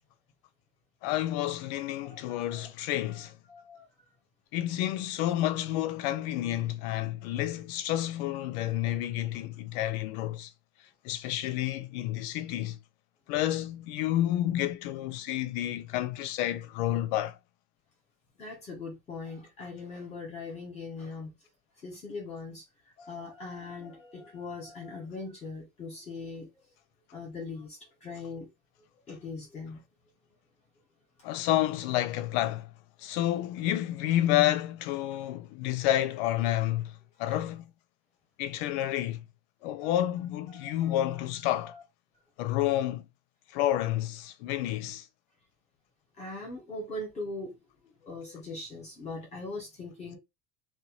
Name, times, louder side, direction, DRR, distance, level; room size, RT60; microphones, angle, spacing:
voice 1, 1.0-3.4 4.5-10.5 11.0-12.8 13.3-17.4 31.2-32.7 33.0-37.7 38.4-39.2 39.6-41.7 42.4-43.1 43.5-45.1, left 13 dB, 60° left, 0.5 m, -30 dB
voice 2, 2.0-2.7 3.0-3.9 18.4-21.3 21.8-22.6 23.0-26.5 27.1-28.5 29.1-29.8 37.2-37.4 39.8-40.0 40.5-41.0 41.5-41.8 46.2-47.5 47.8-50.2, left 3 dB, 20° left, 0.9 m, -41 dB
2.6 x 2.2 x 2.9 m
cardioid pair, 180°, 36 cm